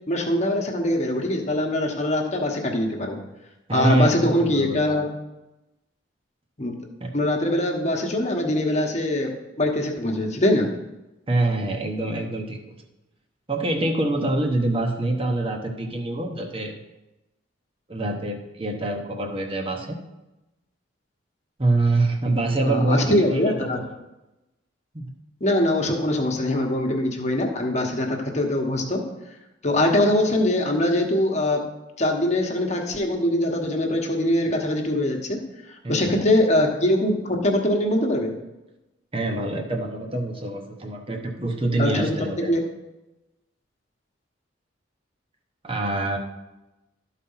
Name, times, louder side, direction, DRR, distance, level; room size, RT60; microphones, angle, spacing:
voice 1, 0.1-3.2 3.7-5.0 6.6-6.8 7.1-10.7 22.6-23.8 25.4-29.0 29.6-31.7 32.0-38.3 41.6-42.6, left 1 dB, 35° left, 2 dB, 1.2 m, -23 dB
voice 2, 3.7-4.9 7.0-7.2 11.3-12.6 13.5-16.7 17.9-20.0 21.6-23.9 24.9-25.1 35.8-36.2 39.1-42.5 45.6-46.2, right 2 dB, 30° right, 3 dB, 0.9 m, -25 dB
12.5 x 4.2 x 5.6 m, 1.0 s
head